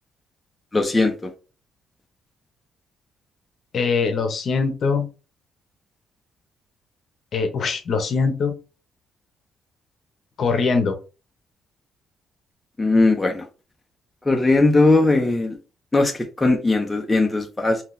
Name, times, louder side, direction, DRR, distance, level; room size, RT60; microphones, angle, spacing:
voice 1, 0.7-1.3 12.8-13.5 14.2-15.6 15.9-17.8, left 2 dB, 15° left, 0.7 m, -19 dB
voice 2, 3.7-5.1 7.3-8.5 10.4-11.0, left 5 dB, 55° left, 0.8 m, -22 dB
3.7 x 2.8 x 2.6 m
cardioid pair, 90°, 0 cm